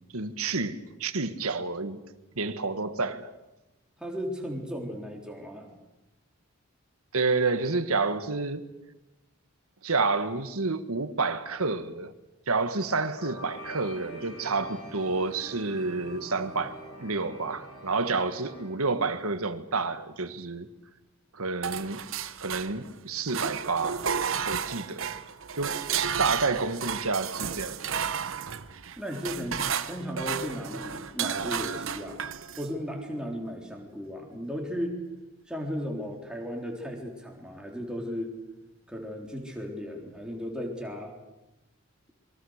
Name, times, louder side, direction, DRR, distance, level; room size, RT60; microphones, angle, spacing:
voice 1, 0.1-2.0 2.4-3.3 7.1-8.6 9.8-12.1 12.5-20.7 21.3-22.0 22.4-24.0 24.5-25.1 25.6-25.8 26.2-27.8, right 3 dB, 75° right, 1.6 m, -29 dB
voice 2, 4.0-5.7 29.0-32.2 32.6-35.0 35.5-38.3 38.9-41.2, equal, 5° right, 3.7 m, -35 dB
sound 1, 13.2-18.7, right 1 dB, 90° left, 6.4 m, -44 dB
sound 2, 21.6-23.0 23.3-32.7, right 7 dB, 60° right, 0.9 m, -32 dB
27.5 x 23.0 x 6.6 m
head